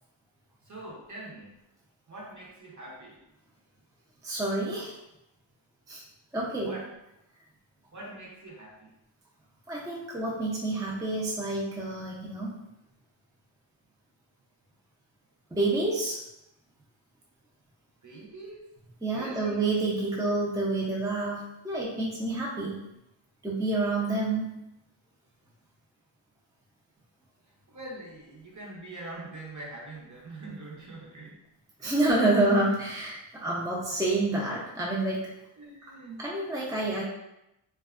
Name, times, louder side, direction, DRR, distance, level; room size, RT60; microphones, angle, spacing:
voice 1, 0.6-1.6 2.1-3.2 6.6-6.9 7.9-8.9 18.0-18.7 19.1-19.6 27.7-31.4 31.8-31.9 35.6-36.3, right 2 dB, 40° right, -3 dB, 0.7 m, -44 dB
voice 2, 4.2-4.9 5.9-6.0 6.3-6.7 9.7-12.6 15.5-16.2 19.0-22.8 23.4-24.6 31.8-35.3 36.2-37.0, right 2 dB, 10° right, -5 dB, 0.4 m, -28 dB
2.5 x 2.3 x 2.4 m, 0.88 s
wide cardioid pair, 80°, 46 cm